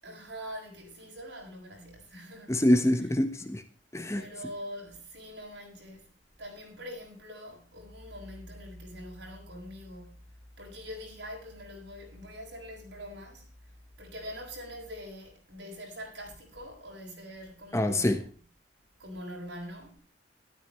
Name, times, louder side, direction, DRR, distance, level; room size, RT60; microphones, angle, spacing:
voice 1, 0.0-2.5 4.1-6.1 6.4-10.2 10.6-13.4 14.0-18.2 19.0-20.0, equal, 75° right, 6.8 m, -43 dB
voice 2, 2.5-3.6 3.9-4.2 17.7-18.2, left 1 dB, 15° left, 1.2 m, -25 dB
13.5 x 13.0 x 3.3 m
head